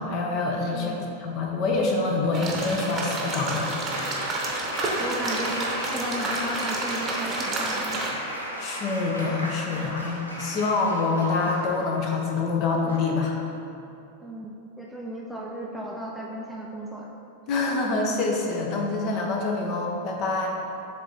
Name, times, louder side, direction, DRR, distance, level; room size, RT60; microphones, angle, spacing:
voice 1, 0.0-3.7 8.6-13.4 17.5-20.5, left 3 dB, 40° left, 1 dB, 0.9 m, -26 dB
voice 2, 0.7-1.2 5.0-8.1 14.2-17.1, equal, ahead, -3 dB, 0.5 m, -35 dB
sound 1, 2.3-8.1, right 2 dB, 25° right, 1.0 m, -30 dB
Applause, 3.2-12.1 12.9-13.3, equal, 85° left, 0.9 m, -35 dB
7.2 x 3.5 x 4.1 m, 2.7 s
figure-of-eight pair, 90°, 0 cm